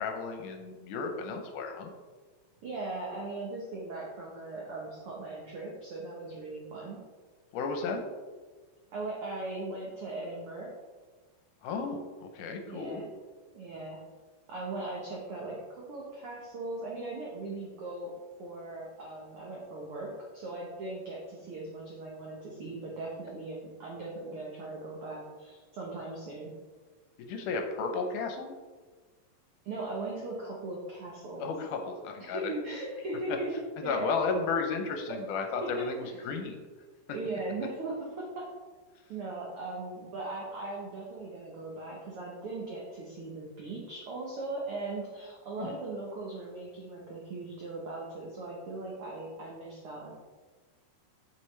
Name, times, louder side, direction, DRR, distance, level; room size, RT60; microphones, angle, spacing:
voice 1, 0.0-1.9 7.5-8.0 11.6-13.1 27.2-28.5 31.4-32.5 33.3-33.4 33.8-36.6 45.6-45.8, left 4 dB, 75° left, 4 dB, 2.1 m, -33 dB
voice 2, 2.6-7.0 8.9-10.7 12.7-13.1 13.5-14.0 14.5-18.1 18.4-26.5 29.6-31.5 32.2-34.1 35.8-36.1 37.1-38.5 39.1-50.1, right 2 dB, 80° right, -3 dB, 1.2 m, -39 dB
7.8 x 5.8 x 3.2 m, 1.4 s
omnidirectional pair, 3.9 m